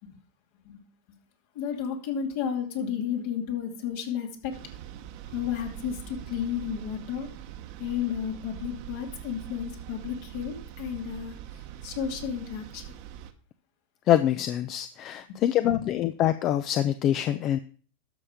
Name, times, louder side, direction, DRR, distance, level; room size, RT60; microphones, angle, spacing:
voice 1, 1.5-4.5 5.3-7.3 7.8-11.4 11.8-12.8 15.3-15.9, left 8 dB, 65° left, 2 dB, 2.6 m, -32 dB
sound 1, 4.5-13.3, right 11 dB, 60° right, 1.1 m, -43 dB
voice 2, 14.1-17.6, left 11 dB, 40° left, 12 dB, 0.6 m, -25 dB
13.0 x 5.7 x 5.0 m, 0.42 s
hypercardioid pair, 110°, 0 cm